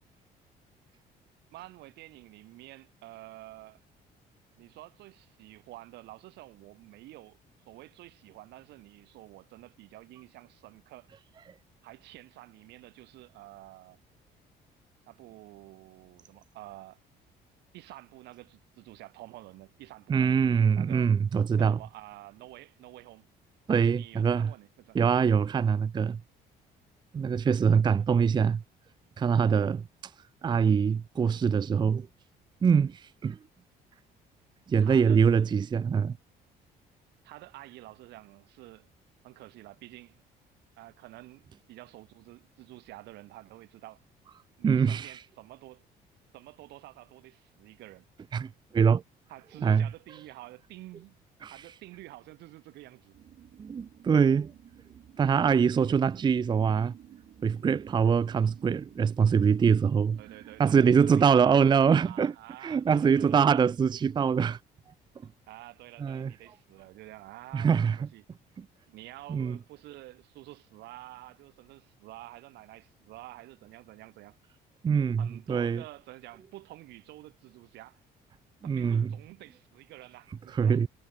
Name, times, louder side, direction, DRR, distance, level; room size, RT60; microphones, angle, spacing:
voice 1, 1.5-3.8 4.6-7.4 7.7-11.1 11.8-14.0 15.1-17.0 17.7-20.4 20.7-21.1 21.6-23.3 23.9-25.0 29.5-29.7 34.8-35.2 37.2-38.9 39.2-40.2 40.8-44.0 44.6-45.9 46.3-48.1 49.3-51.2 51.5-53.2 55.8-56.0 60.2-63.7 65.5-68.2 68.9-74.4 75.2-78.0 78.6-80.8, right 18 dB, 85° right, 6.7 m, -49 dB
voice 2, 20.1-21.8 23.7-24.5 24.9-26.2 27.1-28.6 29.2-29.8 30.4-32.1 32.6-33.4 34.7-36.2 44.6-45.1 48.3-49.0 49.6-49.9 51.4-51.5 53.6-54.5 55.2-56.9 57.4-60.2 60.6-62.3 62.6-64.6 66.0-66.3 67.5-68.0 68.6-68.7 69.3-69.6 74.8-75.8 78.6-79.1 80.5-80.9, right 6 dB, 25° right, 0.5 m, -24 dB
sound 1, 53.1-60.7, right 10 dB, 55° right, 2.2 m, -53 dB
cardioid pair, 110°, 17 cm